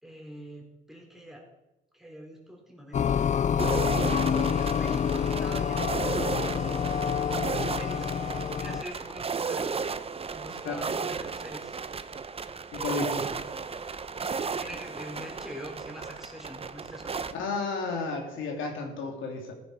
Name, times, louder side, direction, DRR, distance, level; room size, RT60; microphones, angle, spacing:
voice 1, 0.0-1.5 1.9-3.3 3.8-6.6 7.5-8.1 8.5-9.7 10.3-11.8 12.7-13.4 14.5-17.2, equal, ahead, -1 dB, 3.9 m, -43 dB
sound 1, 2.9-8.8, left 7 dB, 35° left, 0.5 m, -27 dB
sound 2, 3.6-17.3, right 5 dB, 30° right, 0.8 m, -34 dB
voice 2, 12.7-13.1 17.3-19.5, left 4 dB, 80° left, 1 dB, 3.1 m, -32 dB
15.0 x 10.5 x 4.9 m, 1.0 s
cardioid pair, 90°, 20 cm